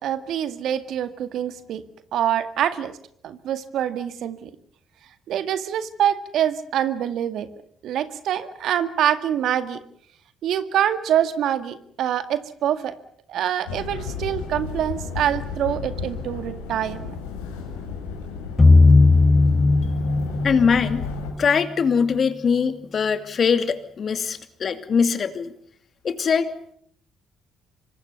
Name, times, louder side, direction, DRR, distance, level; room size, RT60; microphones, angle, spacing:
voice 1, 0.0-1.8 2.1-2.9 3.2-4.5 5.3-7.5 7.8-9.8 10.4-12.9 13.3-17.1 18.9-19.0, right 10 dB, 65° right, 10 dB, 2.0 m, -25 dB
sound 1, 13.7-21.3, left 5 dB, 85° left, 6.2 m, -33 dB
sound 2, 18.6-21.7, left 3 dB, 20° left, 5.4 m, -17 dB
voice 2, 20.4-21.0 21.4-25.5 26.0-26.5, left 6 dB, 50° left, 9 dB, 2.7 m, -22 dB
26.5 x 24.0 x 7.0 m, 0.64 s
hypercardioid pair, 50°, 0 cm